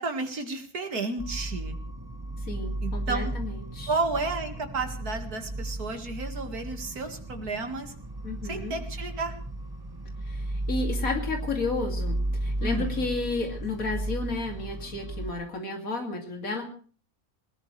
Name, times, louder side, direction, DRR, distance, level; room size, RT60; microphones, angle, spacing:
voice 1, 0.0-1.8 2.8-3.3 3.9-7.9 8.4-9.3 12.6-13.1, right 3 dB, 80° right, 6 dB, 2.6 m, -32 dB
sound 1, 1.2-15.3, right 1 dB, 15° right, 1.4 m, -34 dB
voice 2, 2.5-3.9 8.2-8.7 10.2-16.7, left 3 dB, 65° left, 3 dB, 3.1 m, -32 dB
22.0 x 19.0 x 3.3 m, 0.41 s
omnidirectional pair, 1.6 m